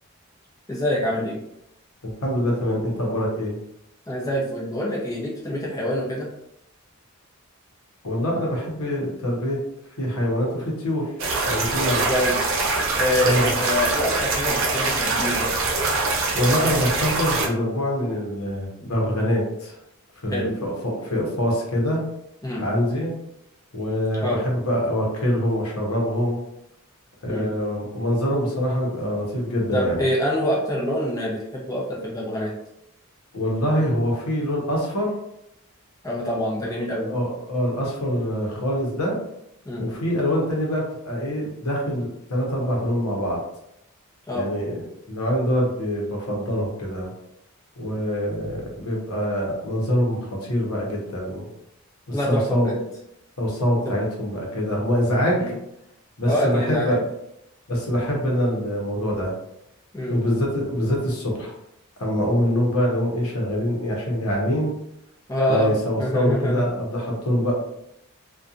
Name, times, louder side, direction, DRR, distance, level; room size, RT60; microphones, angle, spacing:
voice 1, 0.7-1.4 4.1-6.3 11.8-12.5 13.0-15.5 20.3-20.5 22.4-22.6 24.2-24.4 27.3-27.4 29.7-32.5 36.0-37.1 39.6-39.8 44.3-44.5 52.1-52.8 53.8-54.0 55.4-55.5 56.3-57.0 59.9-60.2 65.3-66.6, equal, 15° left, -5 dB, 0.6 m, -25 dB
voice 2, 2.0-3.6 8.0-9.6 10.0-11.1 11.4-12.1 13.2-13.5 16.3-19.8 20.2-22.0 22.6-23.1 23.7-26.4 27.2-30.0 33.3-35.2 37.1-39.2 39.8-43.4 44.3-47.1 47.8-51.5 52.1-52.7 53.4-55.4 56.2-57.0 57.7-59.3 60.1-61.5 62.0-64.7 65.5-67.5, equal, 90° left, -2 dB, 0.9 m, -24 dB
sound 1, 11.2-17.5, right 3 dB, 60° right, 0.5 m, -23 dB
2.7 x 2.3 x 2.4 m, 0.79 s
head